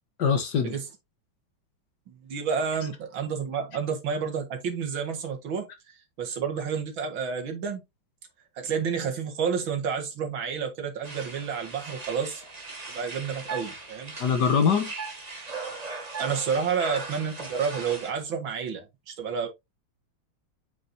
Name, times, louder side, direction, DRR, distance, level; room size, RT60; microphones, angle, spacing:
voice 1, 0.2-0.8 14.2-14.9, left 6 dB, 60° left, 1.6 m, -23 dB
voice 2, 2.1-7.8 8.6-12.4 12.9-14.2 16.2-19.5, right 6 dB, 70° right, 2.4 m, -30 dB
sound 1, 11.0-18.1, right 3 dB, 20° right, 1.4 m, -38 dB
7.8 x 6.1 x 2.7 m
omnidirectional pair, 2.3 m